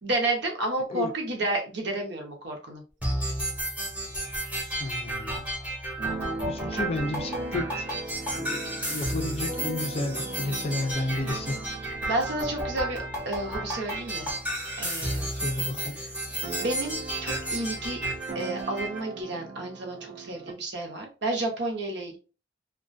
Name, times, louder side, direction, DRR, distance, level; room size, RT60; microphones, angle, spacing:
voice 1, 0.0-2.8 3.2-3.3 6.7-6.9 12.1-14.3 14.8-15.3 16.0-16.1 16.5-18.0 18.3-22.2, right 2 dB, 65° right, 0.8 m, -31 dB
sound 1, 3.0-19.0, right 1 dB, 10° right, 0.8 m, -32 dB
voice 2, 4.8-5.4 6.5-7.9 8.4-11.7 15.3-16.0, left 2 dB, 35° left, 0.4 m, -32 dB
Keyboard (musical), 6.0-15.5 15.8-15.9 16.1-20.5, right 3 dB, 40° right, 0.4 m, -40 dB
2.3 x 2.2 x 2.5 m
head